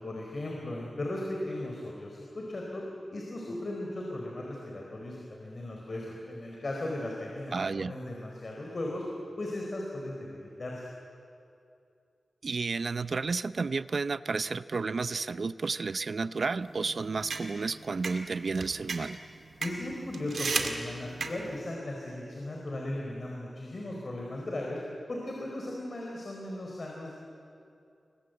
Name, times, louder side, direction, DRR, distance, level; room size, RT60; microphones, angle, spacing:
voice 1, 0.0-2.8 3.1-7.5 7.8-9.0 9.4-10.8 19.6-24.8 25.1-27.1, left 1 dB, 45° left, -1 dB, 4.2 m, -37 dB
voice 2, 7.5-7.9 12.4-19.2, right 4 dB, 60° right, 14 dB, 0.7 m, -31 dB
sound 1, 16.6-21.7, right 4 dB, 75° right, 2.3 m, -36 dB
29.5 x 23.0 x 7.9 m, 2.6 s
wide cardioid pair, 95°, 0 cm